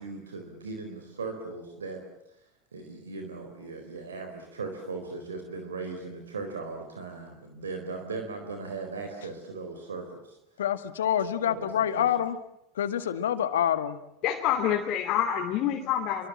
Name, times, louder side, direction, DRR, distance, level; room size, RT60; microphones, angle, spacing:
voice 1, 0.0-2.0 2.7-10.4 11.4-12.1, right 4 dB, 85° right, 4 dB, 4.0 m, -38 dB
voice 2, 10.6-12.4 12.8-14.0, left 10 dB, 75° left, 11 dB, 1.9 m, -27 dB
voice 3, 14.2-16.3, left 10 dB, 50° left, 2 dB, 3.1 m, -27 dB
29.0 x 24.5 x 7.5 m, 0.81 s
hypercardioid pair, 85°, 0 cm